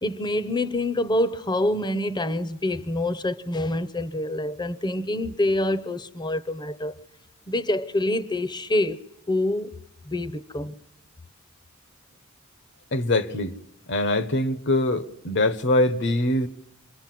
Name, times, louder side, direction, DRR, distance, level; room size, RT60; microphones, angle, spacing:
voice 1, 0.0-7.0 7.5-9.7 10.1-10.8, left 1 dB, 20° left, 0.9 m, -26 dB
voice 2, 12.9-13.6 13.9-16.5, left 1 dB, 60° left, 1.2 m, -23 dB
27.0 x 23.0 x 7.7 m
head